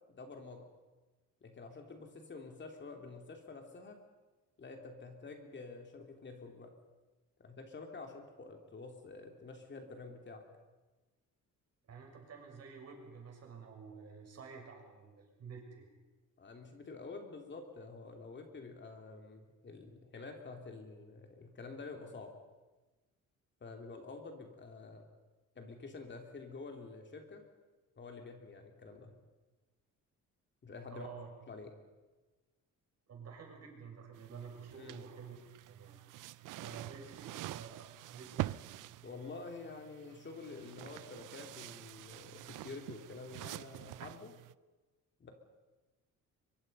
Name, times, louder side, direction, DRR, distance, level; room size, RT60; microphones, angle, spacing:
voice 1, 0.1-0.7 1.4-4.0 4.6-6.7 7.4-10.4 16.4-22.3 23.6-25.0 25.5-27.4 28.0-29.1 30.6-31.1 31.5-31.7 34.7-35.0 36.6-36.7 39.0-44.3 45.2-45.3, left 3 dB, 35° left, 4 dB, 3.0 m, -48 dB
voice 2, 11.9-15.9 30.9-31.3 33.1-35.4 35.7-36.0 36.6-38.5, right 5 dB, 55° right, 1 dB, 6.2 m, -50 dB
sound 1, 34.1-44.5, right 16 dB, 85° right, 0.6 m, -46 dB
23.5 x 23.5 x 5.5 m, 1.2 s
cardioid pair, 125°, 31 cm